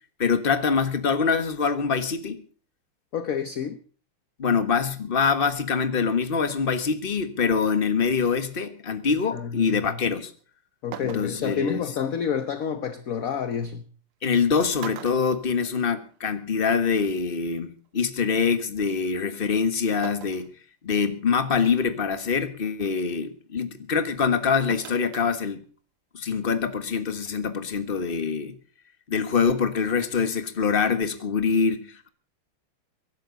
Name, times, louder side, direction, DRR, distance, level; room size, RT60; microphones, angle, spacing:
voice 1, 0.2-2.4 4.4-10.3 11.0-11.8 14.2-20.5 20.8-25.6 26.1-28.5 29.1-32.1, left 5 dB, 30° left, 1.3 m, -24 dB
voice 2, 3.1-3.8 9.3-10.0 10.8-13.8, left 7 dB, 55° left, 1.0 m, -29 dB
sound 1, 10.4-10.5 10.9-11.6 13.2-13.3 14.3-14.4 14.8-16.2 16.5-16.6 17.8-17.9 20.0-20.5 21.1-21.2 21.8-22.1 24.7-25.3 25.6-25.7, right 11 dB, 85° right, 1.8 m, -41 dB
24.0 x 11.5 x 3.9 m
omnidirectional pair, 2.4 m